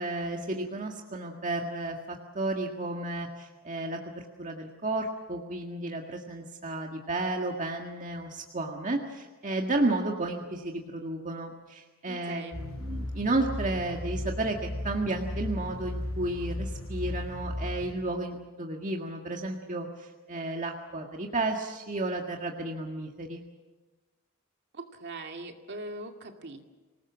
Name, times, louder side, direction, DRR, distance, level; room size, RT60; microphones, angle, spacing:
voice 1, 0.0-14.6 14.8-23.4, right 2 dB, 35° right, 2 dB, 1.8 m, -32 dB
voice 2, 12.1-12.6 24.7-26.7, right 2 dB, 55° right, 4 dB, 2.3 m, -41 dB
sound 1, 12.5-17.9, left 1 dB, 75° left, 5.8 m, -35 dB
26.5 x 19.0 x 7.3 m, 1.2 s
head